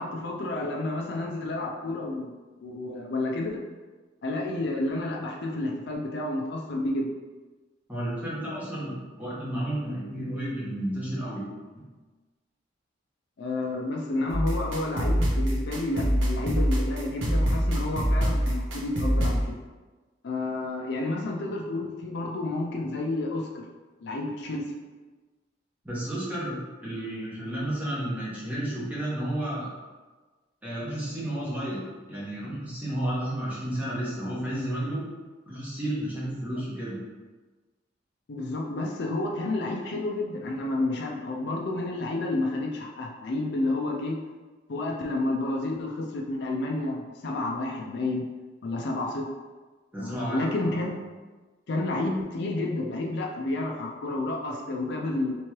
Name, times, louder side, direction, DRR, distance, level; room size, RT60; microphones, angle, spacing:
voice 1, 0.0-2.3 2.6-3.6 4.2-7.1 13.4-19.6 20.2-23.5 24.0-24.6 38.3-44.2 44.7-48.3 48.6-49.3 50.0-51.0 51.7-55.4, left 2 dB, 65° left, 0 dB, 0.4 m, -30 dB
voice 2, 7.9-11.4 11.7-11.8 25.8-29.7 30.6-35.0 35.5-37.0 49.9-50.8, right 1 dB, 10° right, -8 dB, 1.0 m, -32 dB
sound 1, 14.3-19.4, equal, 85° right, 0.8 m, -25 dB
3.4 x 3.0 x 3.0 m, 1.3 s
head